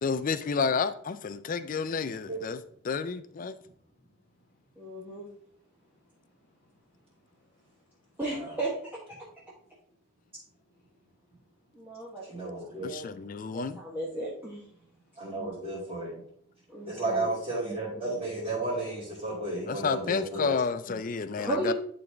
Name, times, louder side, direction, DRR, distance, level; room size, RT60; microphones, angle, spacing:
voice 1, 0.0-3.5 12.8-13.8 19.7-21.7, left 5 dB, 40° left, 0.4 m, -30 dB
voice 2, 4.8-5.3 8.2-8.9 11.7-13.2 13.5-14.6 16.7-17.3 21.4-21.7, right 1 dB, 10° right, 1.1 m, -35 dB
voice 3, 12.3-12.9 15.2-16.2 16.9-20.5 20.8-21.0, right 2 dB, 25° right, 2.5 m, -33 dB
11.0 x 4.0 x 3.4 m
head